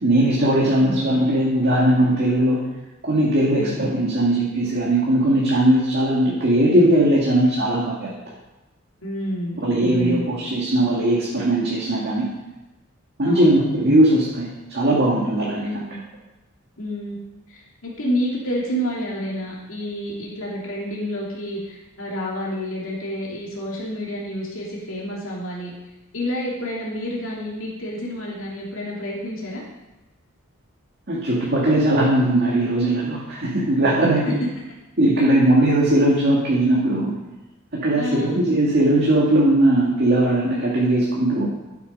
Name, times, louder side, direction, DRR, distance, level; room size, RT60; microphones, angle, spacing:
voice 1, 0.0-2.6 3.0-8.1 9.6-12.3 13.2-15.7 31.1-34.3 35.0-37.1 37.7-41.5, right 1 dB, 50° right, -4 dB, 2.0 m, -19 dB
voice 2, 0.6-1.0 3.6-3.8 9.0-10.3 13.2-13.6 15.5-16.0 16.8-17.2 17.5-25.7 26.1-29.6 34.2-34.3 37.9-38.3, equal, 70° left, -5 dB, 2.7 m, -29 dB
12.0 x 8.3 x 5.4 m, 1.1 s
head